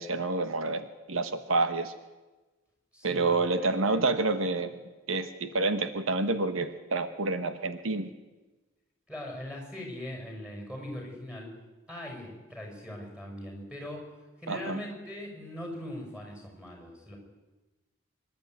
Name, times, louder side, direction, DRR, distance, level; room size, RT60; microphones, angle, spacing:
voice 1, 0.0-1.9 3.0-4.8 5.1-8.1 14.5-14.8, right 3 dB, 85° right, 9 dB, 1.3 m, -28 dB
voice 2, 2.9-4.0 9.1-11.5 11.9-14.1 14.4-17.2, left 1 dB, 5° right, 1 dB, 6.1 m, -41 dB
25.0 x 12.0 x 9.4 m, 1.2 s
head